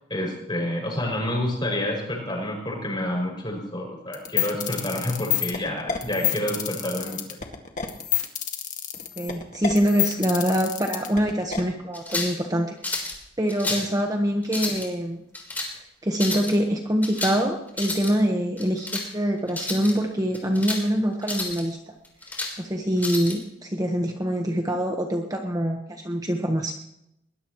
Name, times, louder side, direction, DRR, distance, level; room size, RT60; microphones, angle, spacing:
voice 1, 0.1-7.4 13.7-13.8, left 1 dB, 25° left, 0 dB, 6.5 m, -28 dB
sound 1, 4.1-11.6, left 11 dB, 45° left, 1.9 m, -27 dB
voice 2, 9.2-13.1 13.4-15.2 15.7-21.9 22.6-26.7, equal, 20° right, 2 dB, 1.3 m, -25 dB
sound 2, 11.9-12.4 12.8-13.2 13.5-13.9 14.4-14.9 15.3-15.7 16.1-16.5 17.0-17.4 17.7-18.1 18.6-19.1 19.5-19.9 20.3-20.8 21.2-21.6 22.0-22.5 23.0-23.4, left 2 dB, 10° left, 3.7 m, -30 dB
21.5 x 20.5 x 3.1 m, 0.80 s
head